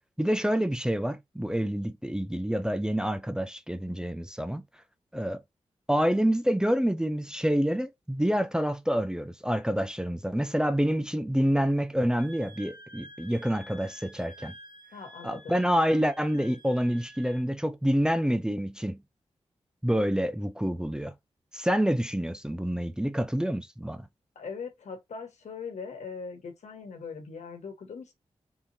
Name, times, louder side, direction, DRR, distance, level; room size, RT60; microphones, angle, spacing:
voice 1, 0.2-4.6 5.1-5.4 5.9-14.5 15.2-19.0 19.8-21.1 21.5-24.1, equal, 5° right, 0.5 m, -27 dB
Wind instrument woodwind instrument, 12.2-17.5, right 1 dB, 40° right, 1.1 m, -50 dB
voice 2, 14.9-15.6 24.3-28.1, left 5 dB, 90° left, 1.2 m, -40 dB
3.6 x 2.9 x 2.7 m
wide cardioid pair, 85°, 11 cm